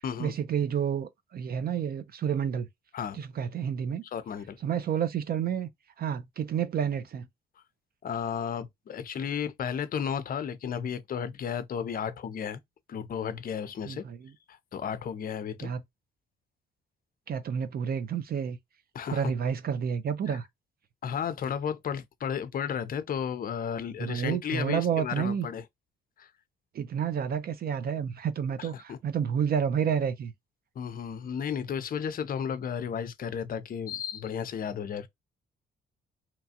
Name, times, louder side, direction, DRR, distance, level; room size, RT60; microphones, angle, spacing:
voice 1, 0.2-2.7 3.1-4.0 4.6-5.7 6.0-7.3 13.9-14.3 15.6-15.8 17.3-18.6 19.1-20.5 24.0-25.5 26.7-30.3, right 8 dB, 50° right, 0.5 m, -30 dB
voice 2, 2.9-3.2 4.1-4.6 8.0-12.6 12.9-14.0 14.5-15.7 18.9-19.3 20.3-20.4 21.0-25.6 26.2-26.3 28.6-29.0 30.8-35.1, left 7 dB, 45° left, 0.5 m, -33 dB
2.8 x 2.3 x 2.7 m
cardioid pair, 90°, 20 cm